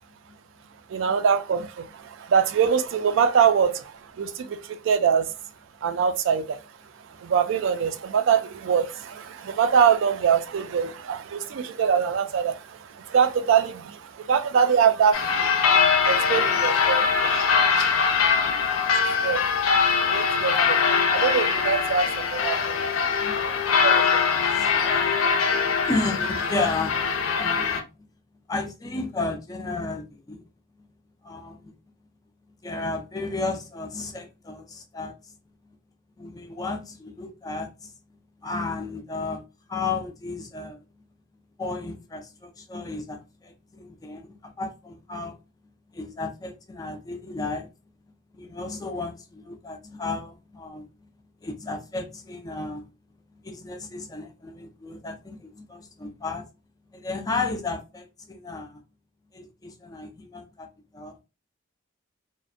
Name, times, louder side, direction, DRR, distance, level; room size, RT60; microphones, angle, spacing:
voice 1, 0.9-5.3 5.8-6.6 7.1-22.8 23.8-24.2, right 7 dB, 65° right, 0.3 m, -24 dB
sound 1, 15.1-27.8, left 6 dB, 80° left, 0.5 m, -22 dB
voice 2, 24.4-24.7 25.5-27.1 27.4-27.9 28.5-30.4 31.2-31.7 32.6-35.1 36.2-37.9 38.4-39.4 39.7-40.8 41.6-45.4 45.9-47.7 48.4-50.9 51.4-52.9 53.4-56.5 56.9-58.8 59.3-60.7 60.9-61.2, left 3 dB, 20° left, 0.3 m, -33 dB
2.5 x 2.0 x 2.5 m
head